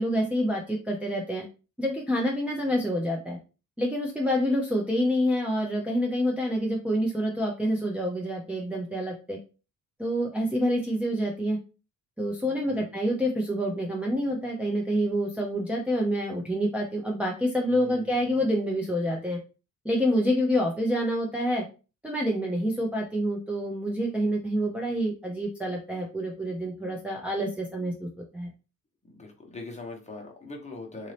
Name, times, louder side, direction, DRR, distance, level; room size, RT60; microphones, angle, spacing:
voice 1, 0.0-1.4 1.8-3.4 3.8-9.4 10.0-11.6 12.2-19.4 19.8-21.6 22.0-28.5, equal, 5° right, -2 dB, 0.6 m, -27 dB
voice 2, 17.7-18.1 29.0-31.1, left 2 dB, 20° left, 0 dB, 1.0 m, -42 dB
4.0 x 2.7 x 3.2 m, 0.33 s
cardioid pair, 115°, 35 cm